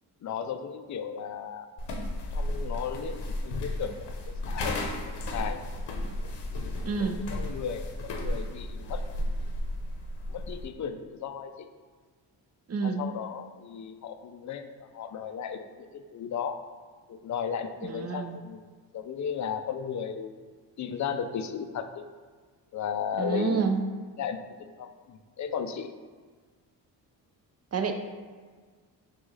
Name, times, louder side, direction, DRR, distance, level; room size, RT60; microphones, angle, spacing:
voice 1, 0.2-1.7 2.3-4.1 4.5-5.6 6.2-6.7 7.0-9.0 10.3-11.7 12.8-16.6 17.1-18.7 18.9-20.3 20.8-22.0 22.7-23.6 24.2-24.4 24.8-25.9, left 7 dB, 40° left, 8 dB, 0.4 m, -35 dB
sound 1, 1.8-10.7, left 1 dB, 60° left, 0.8 m, -33 dB
voice 2, 6.8-7.3 12.7-13.0 17.8-18.4 23.2-23.8 27.7-27.9, right 5 dB, 35° right, 6 dB, 0.5 m, -28 dB
6.2 x 2.4 x 3.1 m, 1.5 s
cardioid pair, 65°, 45 cm